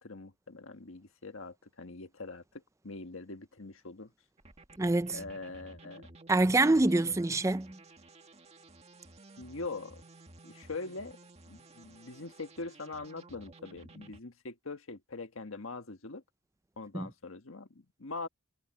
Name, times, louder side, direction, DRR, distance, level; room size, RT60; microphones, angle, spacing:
voice 1, 0.0-4.1 5.1-6.1 9.4-10.0 10.4-11.2 11.5-16.2 16.8-18.3, left 3 dB, 75° left, 1.5 m, -43 dB
sound 1, 4.4-14.2, right 2 dB, 30° right, 2.0 m, -54 dB
voice 2, 4.8-5.2 6.3-7.8 16.9-17.1, right 2 dB, 15° right, 0.5 m, -26 dB
head